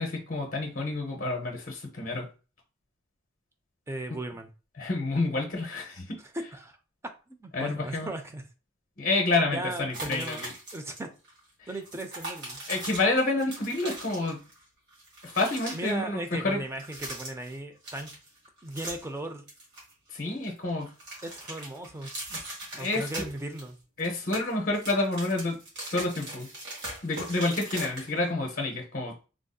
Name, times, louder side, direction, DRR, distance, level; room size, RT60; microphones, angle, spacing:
voice 1, 0.0-2.3 4.8-6.2 7.5-8.1 9.0-10.5 11.6-11.7 12.7-14.4 15.2-16.6 20.1-20.9 22.7-23.0 24.0-25.6 25.9-26.5 27.0-29.1, left 2 dB, 40° left, 0.7 m, -29 dB
voice 2, 3.9-4.5 6.5-6.7 7.3-8.4 9.5-10.4 10.7-11.1 11.7-12.6 15.7-18.1 18.6-19.5 21.2-22.1 22.8-23.8, right 2 dB, 15° right, 0.4 m, -37 dB
sound 1, 9.9-11.0 11.2-11.4 11.8-14.6 14.9-15.9 16.7-17.6 17.8-19.2 19.5-20.5 20.8-23.7 24.0-28.3, right 1 dB, 60° right, 1.4 m, -40 dB
3.5 x 2.6 x 2.2 m
head